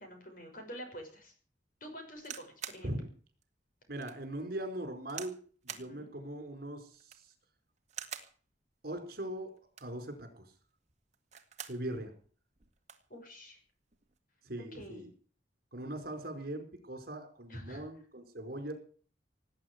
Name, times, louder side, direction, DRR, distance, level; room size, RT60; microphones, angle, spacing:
voice 1, 0.0-1.3 1.8-2.9 5.7-6.1 13.1-13.6 14.6-15.0 17.5-17.8, equal, 50° left, 4 dB, 6.1 m, -47 dB
sound 1, 2.2-2.9 3.4-3.5 4.0-4.2 5.1-5.4 5.7-5.9 6.9-7.3 7.9-8.4 9.6-10.0 11.1-11.8 12.2-12.3 12.6-13.1 13.9-14.2, right 9 dB, 40° right, 2.0 m, -45 dB
voice 2, 3.9-5.4 5.6-7.3 8.8-9.5 9.8-10.5 11.7-12.1 14.4-15.1 15.7-18.7, right 1 dB, 55° right, 6 dB, 4.8 m, -40 dB
18.5 x 9.0 x 8.1 m, 0.43 s
head